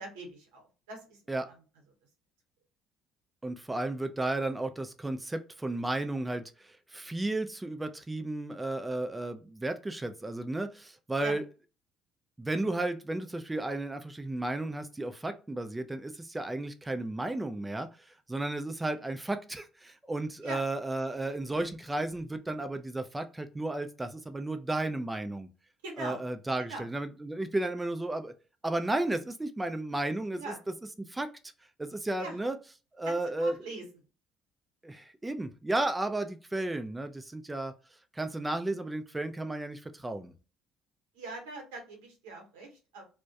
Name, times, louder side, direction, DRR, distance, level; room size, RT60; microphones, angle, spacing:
voice 1, 0.0-1.5 11.2-11.3 20.4-20.6 25.8-26.2 26.6-26.8 30.4-30.6 32.2-32.4 33.0-33.8 41.1-43.0, right 2 dB, 90° right, 1 dB, 0.9 m, -42 dB
voice 2, 3.4-11.4 12.4-25.5 26.0-28.3 28.6-30.5 31.0-31.3 31.8-32.6 32.9-33.5 34.8-37.7 38.1-40.3, right 2 dB, 15° right, 8 dB, 0.3 m, -33 dB
2.2 x 2.1 x 2.7 m, 0.33 s
supercardioid pair, 70°, 0 cm